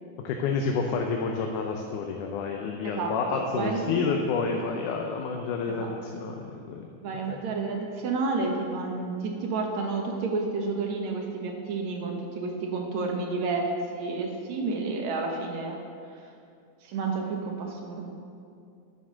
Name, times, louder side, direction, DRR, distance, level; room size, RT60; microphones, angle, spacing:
voice 1, 0.2-6.9 7.3-7.4, left 5 dB, 85° left, 2 dB, 2.3 m, -29 dB
voice 2, 2.8-4.1 4.6-4.7 5.8-5.9 7.0-13.7 13.9-15.8 16.8-18.1, right 3 dB, 70° right, 1 dB, 2.4 m, -30 dB
11.0 x 8.0 x 6.2 m, 2.5 s
omnidirectional pair, 3.5 m